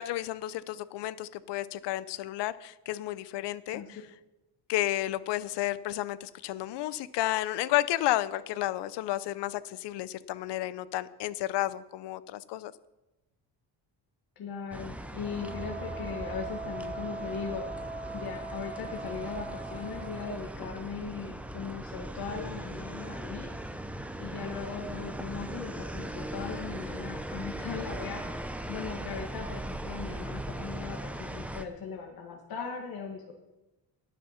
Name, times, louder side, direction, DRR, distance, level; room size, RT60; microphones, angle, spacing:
voice 1, 0.0-4.0 4.7-12.7, left 14 dB, 70° left, 16 dB, 0.7 m, -32 dB
voice 2, 14.3-17.8 18.1-23.5 24.2-33.3, left 6 dB, 55° left, 1 dB, 1.6 m, -39 dB
sound 1, 14.7-31.6, right 1 dB, 5° right, 0.5 m, -39 dB
Wind instrument woodwind instrument, 15.2-20.4, right 3 dB, 15° left, 1.3 m, -41 dB
10.5 x 10.5 x 5.7 m, 1.0 s
cardioid pair, 150°, 43 cm